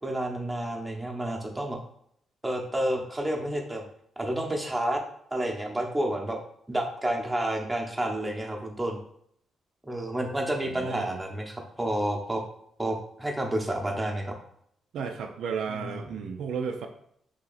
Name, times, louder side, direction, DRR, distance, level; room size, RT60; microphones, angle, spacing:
voice 1, 0.0-1.8 2.4-3.8 4.2-5.0 5.3-6.4 6.7-9.0 9.9-12.4 12.8-14.4 15.7-15.9, right 1 dB, 10° right, 0 dB, 0.8 m, -30 dB
voice 2, 10.6-11.2 14.9-16.9, right 6 dB, 80° right, 4 dB, 0.3 m, -33 dB
2.8 x 2.8 x 3.9 m, 0.67 s
cardioid pair, 75°, 0 cm